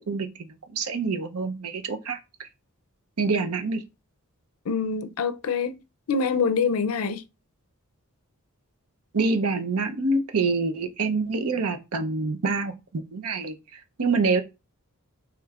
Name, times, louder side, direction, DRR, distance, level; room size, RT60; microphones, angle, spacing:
voice 1, 0.1-2.5 3.2-3.8 9.1-14.4, right 3 dB, 75° right, 0.7 m, -26 dB
voice 2, 4.7-5.8 6.1-7.2, left 5 dB, 75° left, 0.5 m, -25 dB
4.9 x 3.3 x 2.4 m
head